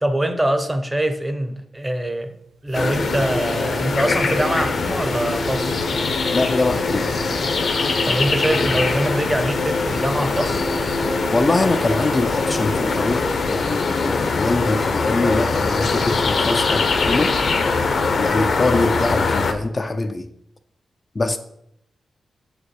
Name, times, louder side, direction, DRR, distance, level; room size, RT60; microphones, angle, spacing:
voice 1, 0.0-2.3 2.6-5.8 8.0-10.7, right 1 dB, 15° right, 0.7 m, -23 dB
sound 1, 1.8-1.9 2.2-2.3 2.5-13.4 13.6-13.7, right 2 dB, 80° right, 0.8 m, -33 dB
sound 2, 2.7-19.5, left 4 dB, 55° left, 0.8 m, -22 dB
voice 2, 6.3-7.1 11.3-17.4 18.1-20.3 21.2-21.4, left 2 dB, 30° left, 0.4 m, -23 dB
6.7 x 5.1 x 4.8 m
cardioid pair, 100°, 0 cm